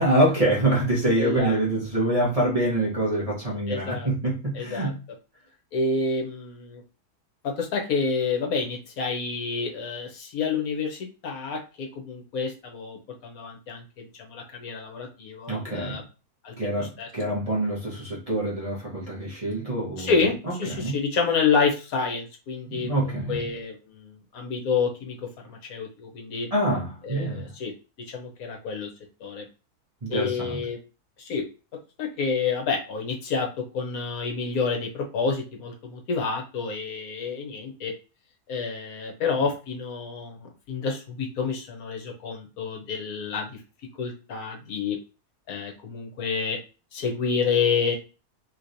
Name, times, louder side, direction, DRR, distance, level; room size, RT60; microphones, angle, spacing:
voice 1, 0.0-5.0 15.5-16.0 16.6-20.1 20.5-21.0 22.7-23.5 26.5-27.5 30.0-30.7, right 1 dB, 25° right, 0.9 m, -25 dB
voice 2, 1.2-1.6 3.7-4.1 4.5-4.9 5.7-6.8 7.4-16.0 16.4-17.1 20.0-26.5 27.0-27.7 28.1-28.9 29.2-29.5 30.1-30.8 31.2-31.4 32.0-37.9 38.5-43.6 44.0-45.0 45.5-46.6 46.9-47.9, left 5 dB, 70° left, 1.2 m, -29 dB
3.2 x 3.0 x 2.6 m
omnidirectional pair, 1.7 m